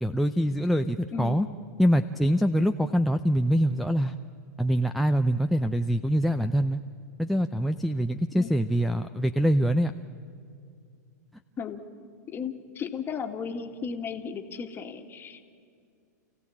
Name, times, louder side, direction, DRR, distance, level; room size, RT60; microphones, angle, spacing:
voice 1, 0.0-1.5 1.8-4.1 4.6-6.8 7.2-9.9, equal, ahead, 12 dB, 0.6 m, -24 dB
voice 2, 1.1-1.4 8.3-8.5 11.6-11.8 12.3-15.4, left 6 dB, 25° left, 6 dB, 1.9 m, -35 dB
28.5 x 16.0 x 8.6 m, 2.4 s
hypercardioid pair, 120°, 9 cm